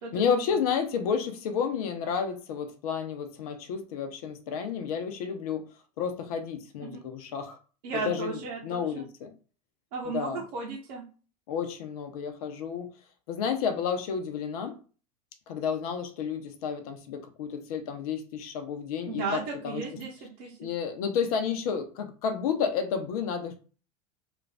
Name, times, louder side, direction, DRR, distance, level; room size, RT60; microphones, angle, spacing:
voice 1, 0.1-5.6 6.0-7.6 7.9-9.3 10.0-10.4 11.5-12.9 13.3-14.8 15.5-19.8 20.6-23.6, left 6 dB, 65° left, 7 dB, 0.8 m, -31 dB
voice 2, 7.8-9.1 9.9-11.0 19.1-20.7, right 4 dB, 65° right, -3 dB, 1.0 m, -35 dB
3.0 x 2.5 x 3.4 m, 0.38 s
hypercardioid pair, 85°, 20 cm